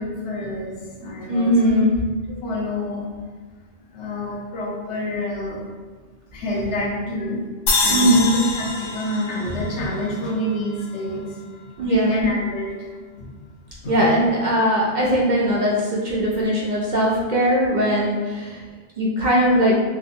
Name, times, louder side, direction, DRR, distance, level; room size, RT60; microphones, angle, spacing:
voice 1, 0.0-1.8 2.3-3.1 3.9-5.6 6.3-7.4 7.8-11.4 11.8-12.9 13.2-13.3 13.8-13.9, equal, 85° left, -4 dB, 1.1 m, -27 dB
voice 2, 1.3-1.9 7.9-8.4 11.8-12.3 13.9-18.6 19.0-19.7, equal, 50° right, -4 dB, 0.6 m, -19 dB
sound 1, 7.7-10.9, left 3 dB, 60° left, 0.7 m, -25 dB
3.6 x 2.5 x 2.7 m, 1.4 s
omnidirectional pair, 1.1 m